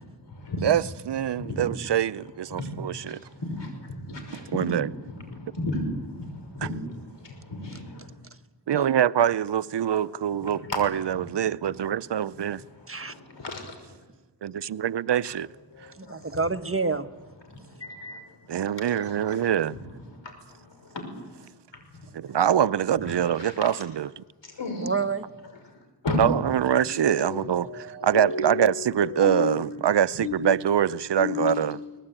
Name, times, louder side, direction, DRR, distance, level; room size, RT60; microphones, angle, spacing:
voice 1, 0.0-0.6 1.4-1.7 2.5-8.1 9.9-10.0 10.4-10.7 12.4-13.9 15.7-16.3 17.5-19.8 20.1-21.5 21.9-22.3 23.1-23.6 24.4-24.9 26.0-26.2 26.8-28.7 29.0-29.8 30.2-30.7 31.2-31.9, left 3 dB, 85° left, 5.9 m, -35 dB
voice 2, 0.6-3.2 4.3-4.9 8.7-12.6 14.4-15.5 18.5-19.8 22.1-24.2 26.2-31.8, right 9 dB, 75° right, 0.7 m, -24 dB
voice 3, 16.0-17.1 17.6-17.7 24.8-25.3 27.6-28.3, right 4 dB, 30° right, 1.2 m, -29 dB
23.0 x 20.0 x 9.0 m
cardioid pair, 50°, 42 cm